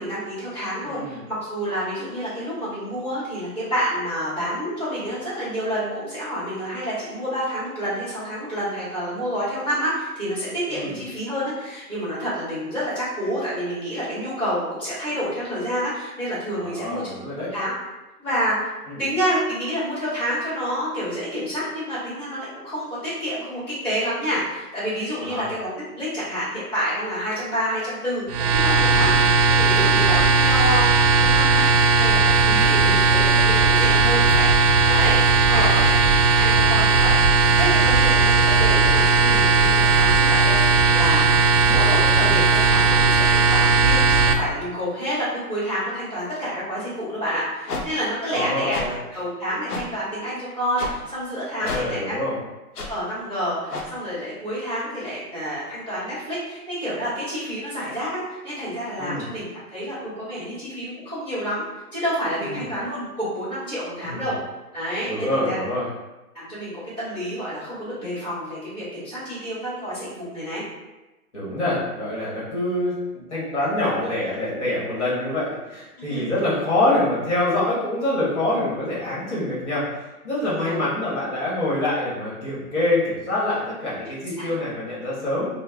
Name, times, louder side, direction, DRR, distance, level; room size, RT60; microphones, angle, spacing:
voice 1, 0.0-17.1 17.5-17.7 18.2-18.7 19.0-29.2 29.5-31.6 31.9-36.0 36.3-37.2 37.6-41.3 41.6-48.8 49.1-52.1 52.9-61.6 61.9-64.3 64.7-65.6 66.3-70.6 76.1-76.4 80.4-80.8 84.4-84.5, equal, ahead, -16 dB, 1.1 m, -28 dB
voice 2, 0.8-1.2 10.7-11.0 16.6-17.5 18.9-19.0 25.2-25.5 28.8-29.1 32.8-33.0 35.4-35.9 48.3-48.9 51.6-52.3 59.0-59.2 62.4-62.7 64.0-64.3 65.1-65.9 71.3-85.5, left 1 dB, 50° left, -7 dB, 1.3 m, -26 dB
sound 1, 28.3-44.3, right 3 dB, 80° right, 0.5 m, -17 dB
sound 2, 47.7-47.8 48.7-48.9 49.7-49.8 50.8-50.9 51.6-51.8 52.7-52.9 53.7-53.9, left 3 dB, 75° left, 0.8 m, -30 dB
3.1 x 2.1 x 3.6 m, 1.1 s
hypercardioid pair, 180°, 46 cm